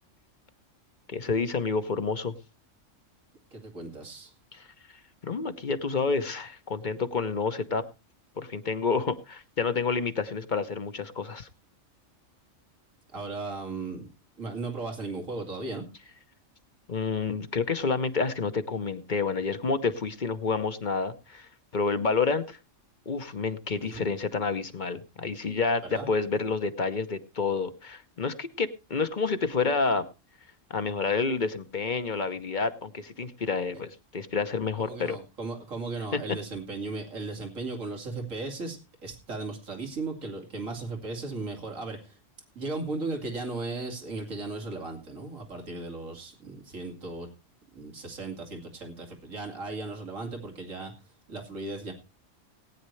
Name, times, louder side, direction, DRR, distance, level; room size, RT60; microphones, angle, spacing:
voice 1, 1.1-2.3 4.5-4.7 5.2-7.8 8.4-11.5 16.9-22.6 23.1-30.0 30.7-35.2 36.1-36.2, left 4 dB, 40° left, 10 dB, 1.0 m, -29 dB
voice 2, 3.5-4.3 13.1-14.1 14.4-15.9 23.8-24.1 25.8-26.1 34.8-42.2 42.6-47.3 47.7-50.9 51.3-51.9, right 3 dB, 85° right, 3 dB, 2.7 m, -36 dB
19.0 x 9.5 x 3.2 m, 0.29 s
omnidirectional pair, 1.3 m